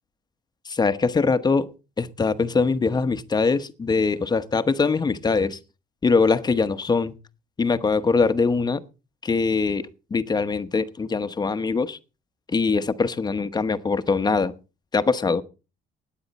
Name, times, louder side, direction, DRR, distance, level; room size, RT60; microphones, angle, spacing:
voice 1, 0.7-1.7 2.0-5.6 6.0-7.1 7.6-8.8 9.2-12.0 12.5-14.5 14.9-15.4, left 4 dB, 25° left, 1.0 m, -22 dB
17.5 x 9.6 x 4.2 m
cardioid pair, 110°, 17 cm